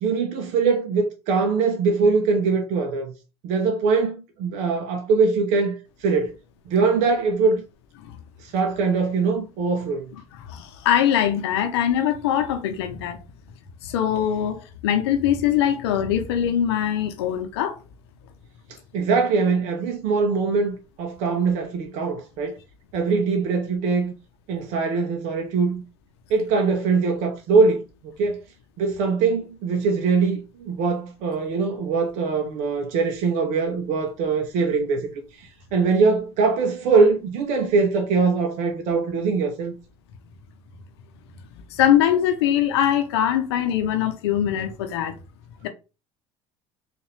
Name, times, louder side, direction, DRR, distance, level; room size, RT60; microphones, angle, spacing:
voice 1, 0.0-3.1 3.4-6.3 6.7-7.6 8.4-10.1 18.9-22.6 22.9-24.1 24.5-25.8 26.3-27.8 28.2-28.4 28.8-39.7, right 4 dB, 65° right, 0.7 m, -22 dB
voice 2, 10.4-13.2 13.8-17.8 41.7-45.2 45.6-45.7, left 10 dB, 85° left, 0.8 m, -22 dB
4.1 x 2.6 x 3.2 m
hypercardioid pair, 75°, 13 cm